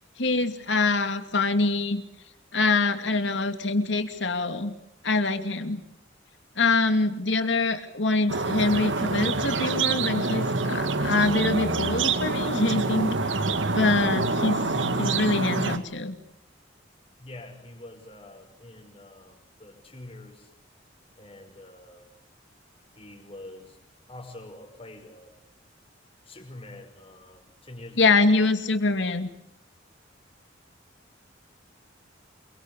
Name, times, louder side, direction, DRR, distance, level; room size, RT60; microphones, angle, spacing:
voice 1, 0.2-2.0 2.5-4.7 5.0-5.8 6.6-13.1 13.7-16.1 28.0-29.3, left 3 dB, 70° left, 8 dB, 2.8 m, -24 dB
sound 1, 8.3-15.8, right 3 dB, 75° right, 2.0 m, -26 dB
voice 2, 17.2-20.5 21.2-22.1 23.0-23.8 24.1-25.4 26.3-28.2, left 1 dB, 30° left, 4 dB, 6.1 m, -45 dB
28.5 x 24.0 x 8.5 m, 0.75 s
head